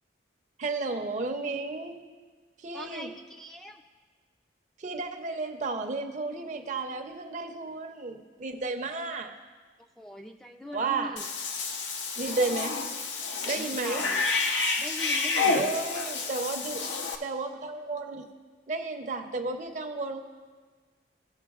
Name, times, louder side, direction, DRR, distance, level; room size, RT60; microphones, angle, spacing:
voice 1, 0.6-2.0 2.6-3.1 4.8-9.3 10.7-11.2 12.2-12.8 13.5-14.0 15.5-16.8 17.2-18.3 18.7-20.2, right 3 dB, 40° right, 5 dB, 0.6 m, -32 dB
voice 2, 2.7-3.8 10.0-11.3 13.6-14.2 14.8-15.7, equal, 5° left, 4 dB, 0.3 m, -42 dB
Cat / Bathtub (filling or washing), 11.2-17.2, left 4 dB, 85° left, 0.7 m, -29 dB
16.0 x 6.5 x 2.4 m, 1.5 s
head